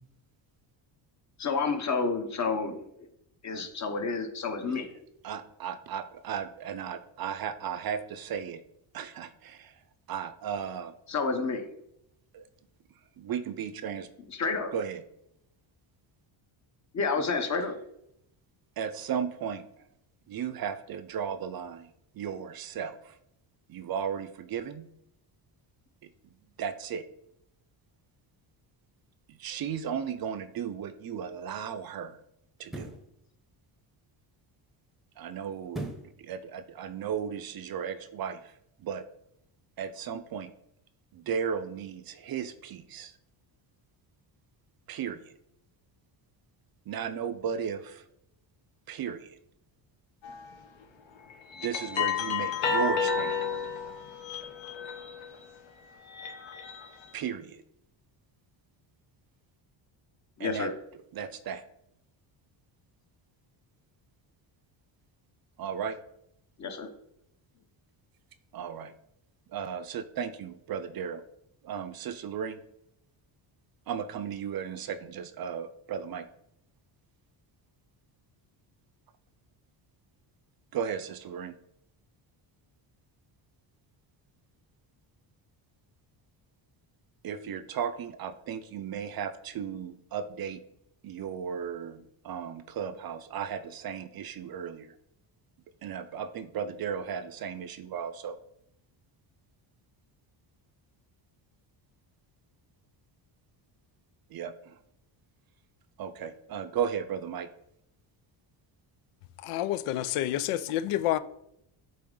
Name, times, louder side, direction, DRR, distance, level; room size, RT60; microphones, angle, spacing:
voice 1, 1.4-2.8 3.4-4.9 11.1-11.7 13.9-14.7 16.9-17.7 60.4-60.7 66.6-66.9, left 4 dB, 35° left, 0.9 m, -30 dB
voice 2, 5.2-8.6 8.9-9.3 10.1-10.9 12.3-12.4 13.2-14.1 14.7-15.0 18.8-19.6 20.3-21.8 22.2-22.9 23.7-24.9 26.6-27.0 29.4-32.1 32.6-32.9 35.2-35.9 36.3-38.4 38.8-39.0 39.8-40.5 41.3-43.1 44.9-45.2 46.9-47.8 48.9-49.2 51.6-53.4 57.1-57.5 60.4-60.7 61.2-61.6 65.6-66.0 68.5-68.9 69.5-71.2 71.6-72.6 73.9-76.2 80.7-81.5 87.2-90.6 91.0-92.0 92.3-94.8 95.8-98.3 104.3-104.5 106.0-107.5, right 7 dB, 50° right, 0.5 m, -35 dB
sound 1, 30.7-30.9 32.6-33.1 35.7-36.2 36.6-36.7, right 1 dB, ahead, 0.8 m, -38 dB
sound 2, 50.2-50.5 51.2-55.4 55.9-57.0, left 6 dB, 65° left, 1.1 m, -32 dB
voice 3, 109.4-111.2, left 13 dB, 90° left, 0.6 m, -28 dB
8.5 x 3.5 x 3.8 m
cardioid pair, 120°, 49 cm